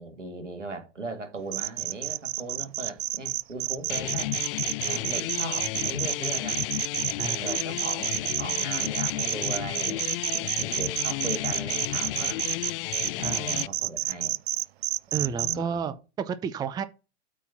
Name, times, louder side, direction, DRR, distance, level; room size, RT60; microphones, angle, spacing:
voice 1, 0.0-4.3 4.8-6.7 7.4-12.4 13.2-14.4 15.1-15.8, right 3 dB, 85° right, 2.1 m, -38 dB
sound 1, 1.5-15.5, right 15 dB, 60° right, 0.5 m, -29 dB
sound 2, 3.9-13.7, left 17 dB, 50° left, 0.4 m, -32 dB
voice 2, 7.2-7.5 13.2-13.6 15.1-16.8, right 6 dB, 10° right, 0.5 m, -32 dB
8.2 x 4.2 x 5.8 m
figure-of-eight pair, 95°, 36 cm